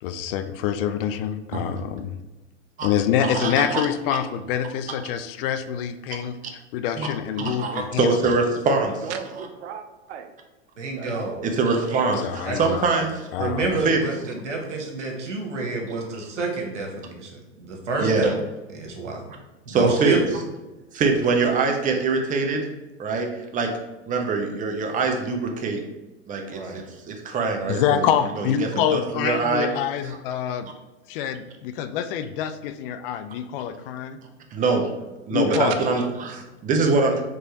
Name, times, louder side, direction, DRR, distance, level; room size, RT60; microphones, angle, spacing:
voice 1, 0.0-2.1 2.8-6.4 6.7-8.1 12.2-12.9 13.3-13.8 27.7-30.7 31.1-34.2 35.3-35.8, left 9 dB, 50° left, 10 dB, 0.4 m, -26 dB
voice 2, 3.3-3.8 7.0-7.1 7.4-9.1 11.4-13.3 13.8-14.0 18.0-18.3 19.7-20.2 20.9-22.7 23.0-23.7 24.1-25.8 26.3-28.1 28.4-30.2 34.5-34.9 35.3-37.2, right 4 dB, 20° right, 3 dB, 0.6 m, -24 dB
voice 3, 9.0-10.3 11.0-11.4 35.4-36.0, right 7 dB, 70° right, 7 dB, 0.6 m, -34 dB
voice 4, 10.8-11.4 11.7-12.0 12.4-12.6 13.4-18.3 18.7-19.2 19.7-20.2 26.5-26.8, right 3 dB, 85° right, 1 dB, 1.1 m, -28 dB
4.5 x 3.2 x 3.0 m, 1.1 s
hypercardioid pair, 100°, 35 cm